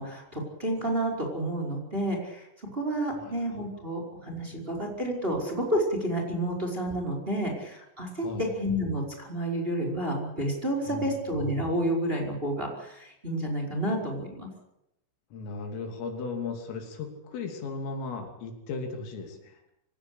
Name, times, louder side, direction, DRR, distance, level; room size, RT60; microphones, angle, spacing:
voice 1, 0.0-14.5, right 1 dB, 10° right, 2 dB, 4.8 m, -30 dB
voice 2, 15.3-19.6, left 4 dB, 75° left, 4 dB, 5.7 m, -36 dB
25.5 x 18.0 x 8.4 m, 0.83 s
omnidirectional pair, 5.9 m